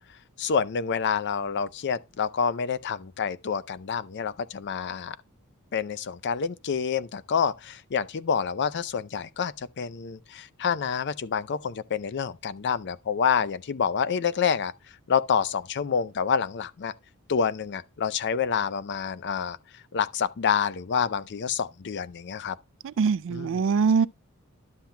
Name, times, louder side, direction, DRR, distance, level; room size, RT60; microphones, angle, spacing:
voice 1, 0.4-5.2 5.7-14.7 15.1-16.9 17.3-19.6 19.9-22.6 23.3-23.6, left 6 dB, 50° left, 0.5 m, -28 dB
voice 2, 22.8-24.1, right 5 dB, 60° right, 0.3 m, -23 dB
11.5 x 7.4 x 2.2 m
head